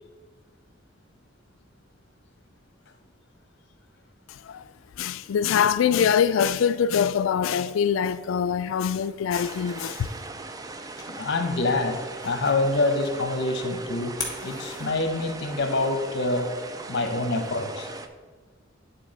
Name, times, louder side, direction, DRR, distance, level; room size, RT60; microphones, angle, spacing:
voice 1, 5.0-10.1, left 7 dB, 80° left, 0.3 m, -23 dB
sound 1, 8.6-15.5, left 4 dB, 20° left, 1.4 m, -43 dB
sound 2, 9.3-18.1, right 3 dB, 20° right, 0.3 m, -39 dB
voice 2, 11.1-14.1 14.4-16.5 16.9-17.9, left 2 dB, 60° left, 0.9 m, -26 dB
10.5 x 4.0 x 4.0 m
head